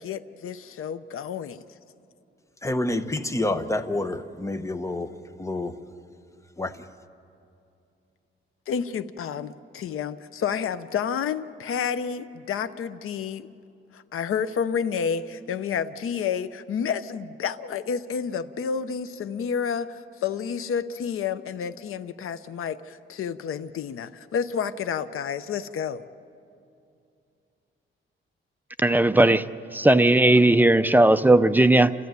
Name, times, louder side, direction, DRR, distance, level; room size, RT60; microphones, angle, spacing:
voice 1, 0.0-1.6 8.7-13.5 13.9-26.0, left 7 dB, 85° left, 0.7 m, -30 dB
voice 2, 2.6-5.1 5.4-5.8 6.6-6.9, left 2 dB, 15° left, 1.0 m, -28 dB
voice 3, 28.8-29.4 29.7-31.9, right 1 dB, 10° right, 0.5 m, -17 dB
29.5 x 14.0 x 9.4 m
cardioid pair, 110°, 21 cm